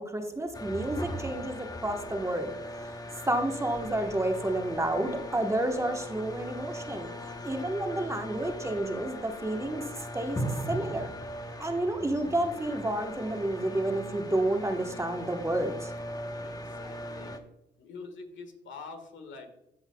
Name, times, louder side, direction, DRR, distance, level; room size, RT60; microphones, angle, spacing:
voice 1, 0.0-2.9 3.2-7.1 7.4-9.8 10.1-10.4 10.7-11.1 11.6-15.9, right 1 dB, 15° right, 4 dB, 1.2 m, -30 dB
sound 1, 0.5-17.4, equal, 20° left, 0.9 m, -39 dB
voice 2, 16.4-17.4 17.8-19.5, left 4 dB, 70° left, 5 dB, 1.6 m, -45 dB
14.0 x 5.6 x 2.3 m, 0.86 s
cardioid pair, 90°, 20 cm